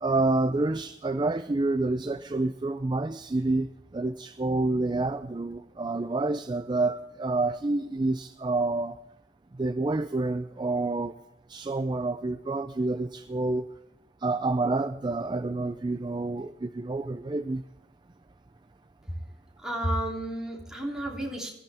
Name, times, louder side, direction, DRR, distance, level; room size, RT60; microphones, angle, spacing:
voice 1, 0.0-9.0 9.6-11.1 11.5-13.7 14.2-17.6, right 2 dB, 25° right, 0.4 m, -28 dB
voice 2, 19.6-21.5, right 1 dB, 5° right, 3.2 m, -31 dB
20.5 x 14.5 x 3.5 m
head